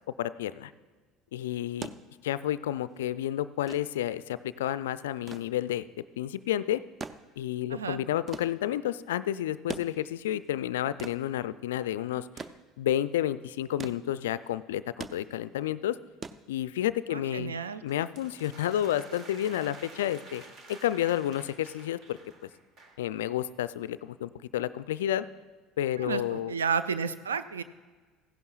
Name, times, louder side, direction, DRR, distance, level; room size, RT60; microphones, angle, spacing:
voice 1, 0.2-0.7 1.3-1.9 2.2-5.8 6.2-6.8 7.4-12.3 12.8-16.0 16.5-17.5 17.8-20.4 20.7-22.5 23.0-25.2 25.8-26.5, left 12 dB, 75° left, 15 dB, 0.3 m, -30 dB
sound 1, 1.7-17.1 18.3-18.4, right 4 dB, 35° right, 0.5 m, -45 dB
voice 2, 7.7-8.0 17.1-17.8 26.0-27.6, right 6 dB, 85° right, 13 dB, 0.4 m, -31 dB
sound 2, 17.9-23.1, right 3 dB, 50° right, 1.4 m, -51 dB
15.5 x 11.0 x 2.4 m, 1.4 s
hypercardioid pair, 65°, 0 cm